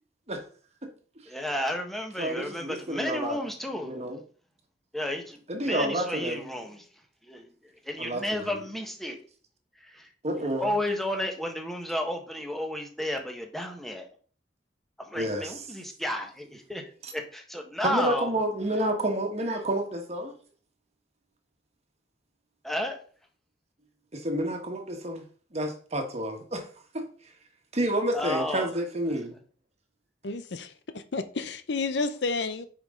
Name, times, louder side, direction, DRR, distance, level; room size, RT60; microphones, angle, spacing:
voice 1, 1.3-4.1 4.9-6.9 7.2-9.2 9.8-10.1 10.6-14.1 15.0-16.8 17.1-18.4 22.6-23.0 28.1-28.7, left 1 dB, ahead, 1.3 m, -32 dB
voice 2, 2.2-3.4 3.8-4.2 5.5-6.4 8.0-8.5 10.2-10.6 15.1-15.5 17.8-20.3 24.1-25.2 25.5-26.7 26.9-27.0 27.7-29.3, right 1 dB, 40° right, 1.5 m, -29 dB
voice 3, 30.2-32.7, left 3 dB, 70° left, 0.7 m, -31 dB
9.2 x 5.1 x 3.8 m
head